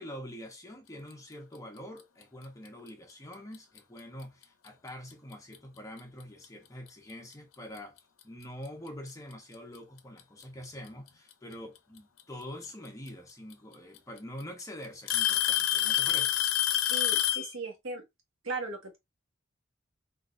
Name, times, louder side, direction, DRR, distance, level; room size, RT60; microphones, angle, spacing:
voice 1, 0.0-8.0 8.2-16.4, left 1 dB, 15° left, 0.7 m, -45 dB
Alarm / Tick-tock, 3.5-3.8 4.7-4.8 5.5-5.6 7.3-7.4 8.7-8.8 10.0-10.4 12.2-12.3 13.5-13.6 14.0-14.4 15.1-17.5, left 13 dB, 85° left, 0.5 m, -27 dB
voice 2, 16.9-18.0 18.4-19.0, right 3 dB, 80° right, 1.2 m, -37 dB
3.7 x 2.6 x 2.5 m
head